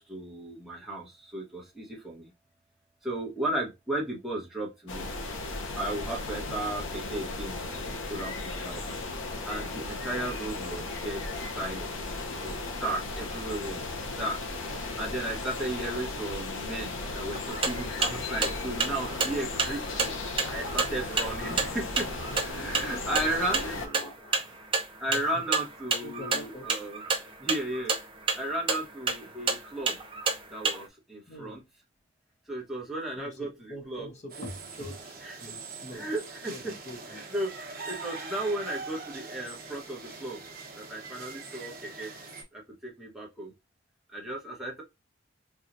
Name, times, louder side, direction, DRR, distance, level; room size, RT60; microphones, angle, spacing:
voice 1, 0.0-2.3 3.0-5.1 5.8-7.6 7.9-8.9 9.5-11.9 12.4-14.4 15.0-22.0 22.4-23.8 25.0-27.0 27.4-28.0 28.3-30.0 30.5-31.6 32.5-33.5 33.9-34.1 35.2-35.4 35.9-36.5 37.1-40.4 40.8-42.1 42.5-43.5 44.1-44.8, right 1 dB, ahead, 1.1 m, -35 dB
sound 1, 4.9-23.9, left 3 dB, 65° left, 0.8 m, -36 dB
sound 2, 17.3-30.8, right 4 dB, 25° right, 0.6 m, -30 dB
voice 2, 21.5-23.1 23.7-25.4 26.0-26.8 29.2-29.4 31.3-31.6 33.2-36.1 36.5-37.3, equal, 35° left, 1.0 m, -45 dB
sound 3, 34.3-42.4, right 4 dB, 45° right, 1.1 m, -43 dB
4.5 x 2.4 x 2.6 m
head